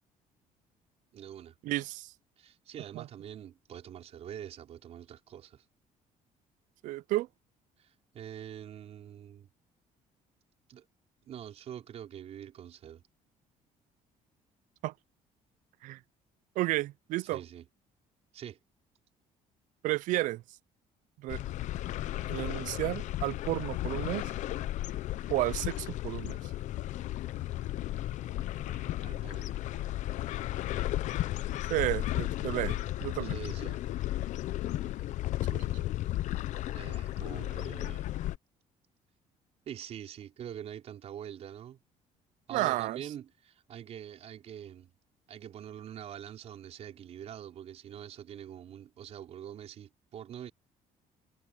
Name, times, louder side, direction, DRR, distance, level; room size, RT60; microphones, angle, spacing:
voice 1, 1.1-1.6 2.4-5.6 7.8-9.5 10.7-10.8 11.2-13.0 17.3-17.7 18.3-18.6 28.6-29.5 33.2-33.8 36.7-38.2 39.7-41.8 42.5-44.9 45.3-50.5, right 10 dB, 50° right, 4.6 m, -45 dB
voice 2, 1.6-2.1 2.9-3.1 6.8-7.3 14.8-14.9 15.8-16.0 16.6-17.4 19.8-20.4 21.2-21.4 22.3-24.3 25.3-26.4 31.7-33.4 35.5-35.6 42.5-43.0, right 18 dB, 70° right, 0.4 m, -32 dB
sound 1, 21.3-38.4, left 14 dB, 60° left, 0.7 m, -34 dB
cardioid pair, 155°, 14 cm